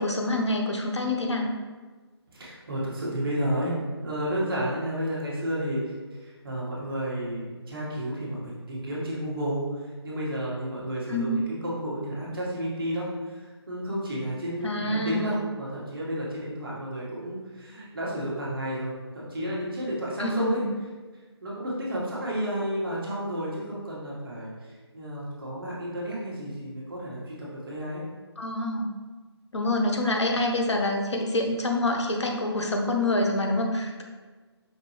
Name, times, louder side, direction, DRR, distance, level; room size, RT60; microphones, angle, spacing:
voice 1, 0.0-1.5 11.1-11.4 14.6-15.3 20.2-20.7 28.4-28.9 29.5-34.0, left 1 dB, 85° left, 1 dB, 0.7 m, -26 dB
voice 2, 2.3-3.8 4.0-20.6 21.4-28.0, equal, 55° right, -5 dB, 1.3 m, -32 dB
5.2 x 2.5 x 3.1 m, 1.4 s
figure-of-eight pair, 150°, 14 cm